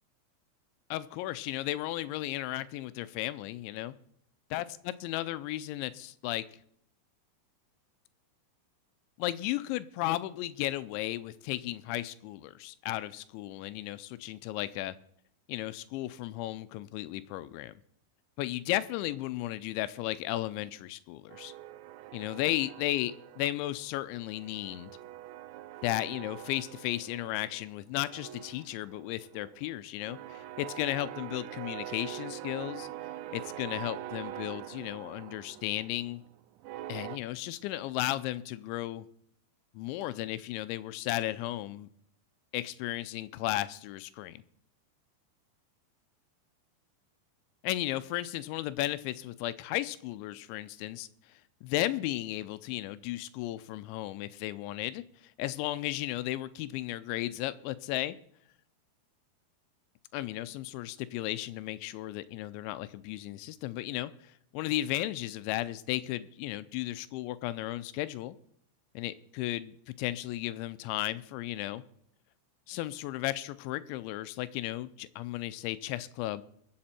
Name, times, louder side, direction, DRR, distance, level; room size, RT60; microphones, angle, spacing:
voice 1, 0.9-3.9 4.5-6.4 9.2-15.0 15.5-17.7 18.4-21.5 22.1-24.9 25.8-32.9 33.3-36.2 36.9-39.1 39.8-41.9 42.5-44.4 47.6-51.1 51.6-58.2 60.1-64.1 64.5-68.4 69.0-71.8 72.7-76.4, left 15 dB, 90° left, 14 dB, 3.0 m, -34 dB
sound 1, 21.3-23.8 24.1-27.7 28.0-37.2, right 13 dB, 85° right, 2.9 m, -44 dB
22.5 x 7.7 x 4.4 m, 0.68 s
omnidirectional pair, 5.2 m